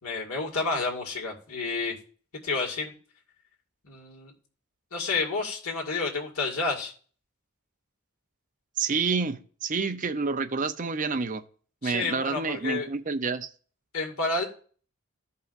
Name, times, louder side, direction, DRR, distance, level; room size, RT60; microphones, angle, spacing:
voice 1, 0.0-2.0 2.4-2.9 3.8-4.3 4.9-6.9 11.8-12.9 13.9-14.4, left 3 dB, 90° left, 2.1 m, -30 dB
voice 2, 8.8-11.4 11.8-13.5, right 4 dB, 35° right, 0.6 m, -28 dB
15.0 x 5.5 x 2.6 m
head